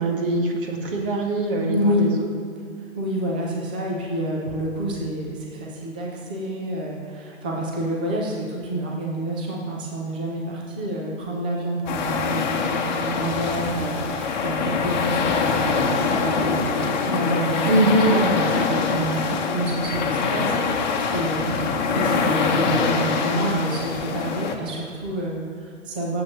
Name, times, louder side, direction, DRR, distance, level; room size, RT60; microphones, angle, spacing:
voice 1, 0.0-2.3 17.6-18.2, right 1 dB, 45° right, 0 dB, 2.0 m, -22 dB
voice 2, 1.7-2.1 3.0-17.8 18.1-26.2, right 1 dB, 10° right, -2 dB, 0.4 m, -28 dB
sound 1, 11.9-24.5, left 5 dB, 35° left, 1.1 m, -24 dB
17.0 x 7.5 x 3.1 m, 2.1 s
figure-of-eight pair, 130°, 38 cm